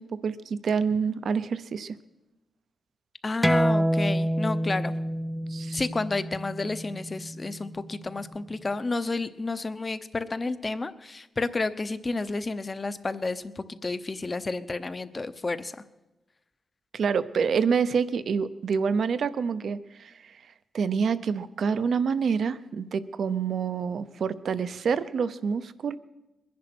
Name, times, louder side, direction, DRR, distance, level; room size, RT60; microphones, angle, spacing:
voice 1, 0.0-2.0 5.5-5.8 16.9-20.3 20.7-26.0, right 6 dB, 65° right, 14 dB, 0.7 m, -27 dB
voice 2, 3.2-4.9 5.7-15.8, left 3 dB, 30° left, 13 dB, 0.8 m, -31 dB
sound 1, 3.4-8.6, equal, ahead, 0.5 m, -28 dB
21.5 x 10.5 x 6.1 m, 1.0 s
wide cardioid pair, 110°, 0 cm